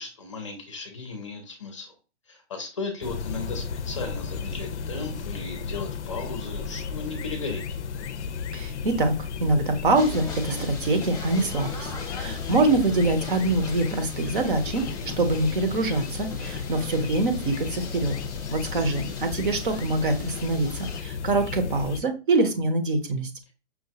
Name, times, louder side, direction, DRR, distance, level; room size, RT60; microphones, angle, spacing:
voice 1, 0.0-1.9 2.3-7.7 12.2-12.7 18.8-19.0, left 3 dB, 25° left, 4 dB, 0.6 m, -36 dB
sound 1, 3.0-22.0, left 6 dB, 80° left, 0.5 m, -34 dB
voice 2, 8.5-14.9 15.2-18.1 18.5-23.3, right 2 dB, 50° right, 8 dB, 0.8 m, -24 dB
sound 2, 9.9-21.0, left 2 dB, 5° left, 0.9 m, -40 dB
5.7 x 2.3 x 2.8 m, 0.33 s
hypercardioid pair, 180°, 35 cm